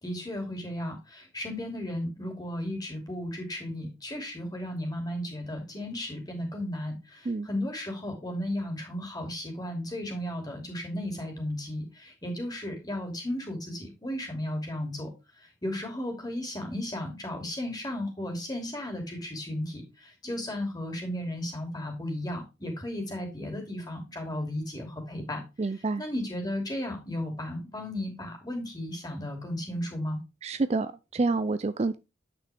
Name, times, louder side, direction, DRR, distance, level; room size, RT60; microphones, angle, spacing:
voice 1, 0.0-30.2, left 1 dB, 20° left, 2.8 m, -35 dB
voice 2, 25.6-26.0 30.4-32.0, right 3 dB, 35° right, 0.4 m, -28 dB
9.2 x 6.0 x 3.5 m
head